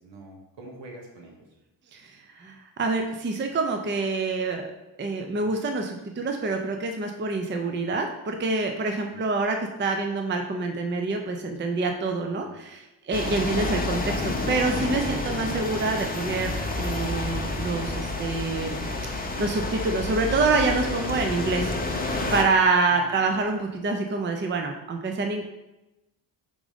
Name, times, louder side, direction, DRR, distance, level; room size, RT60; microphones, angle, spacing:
voice 1, 0.0-1.4 5.3-5.6 9.1-9.3 12.4-12.5 22.9-23.1, right 2 dB, 70° right, 0 dB, 1.5 m, -46 dB
voice 2, 1.9-4.7 5.0-14.1 14.5-22.0 22.3-25.4, right 3 dB, 25° right, 4 dB, 0.5 m, -26 dB
sound 1, 13.1-22.4, left 2 dB, 20° left, 0.8 m, -29 dB
5.0 x 3.7 x 5.0 m, 0.96 s
cardioid pair, 120°, 46 cm